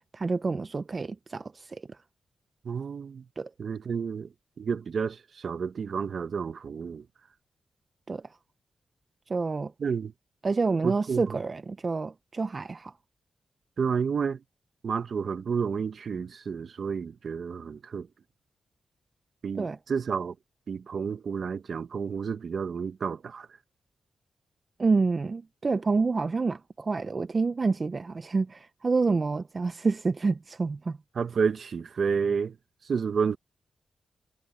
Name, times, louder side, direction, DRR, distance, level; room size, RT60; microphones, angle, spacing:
voice 1, 0.1-1.8 3.4-3.5 8.1-8.2 9.3-9.7 10.4-12.9 19.5-19.8 24.8-31.0, right 4 dB, 45° right, 0.9 m, -28 dB
voice 2, 2.6-3.2 3.6-4.3 4.6-7.0 9.8-10.1 10.8-11.4 13.8-14.4 14.8-18.1 19.4-20.3 20.7-23.5 31.1-32.5 32.9-33.4, right 6 dB, 65° right, 1.4 m, -30 dB
supercardioid pair, 45°, 0 cm